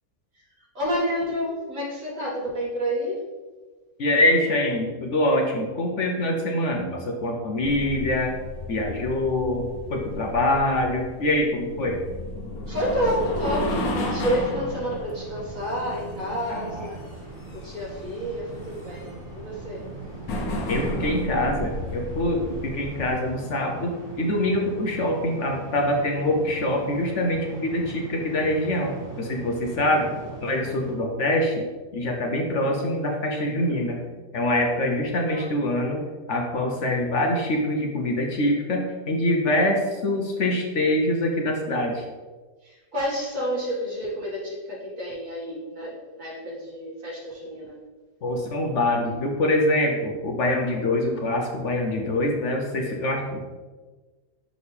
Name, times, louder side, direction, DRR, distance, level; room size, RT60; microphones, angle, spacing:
voice 1, 0.7-3.3 12.7-17.0 17.5-19.9 29.6-30.1 35.3-35.5 42.6-47.8, equal, 60° right, -6 dB, 2.4 m, -29 dB
voice 2, 4.0-8.3 8.7-12.0 16.5-16.9 20.7-28.9 29.2-30.1 30.4-31.6 31.9-34.0 34.3-36.0 36.3-42.0 48.2-53.4, left 1 dB, 60° left, 1 dB, 1.0 m, -24 dB
sound 1, 7.6-23.1, left 1 dB, 80° left, 1.3 m, -33 dB
sound 2, 13.0-30.9, right 3 dB, 40° right, 2.3 m, -40 dB
6.4 x 5.0 x 3.3 m, 1.3 s
omnidirectional pair, 1.5 m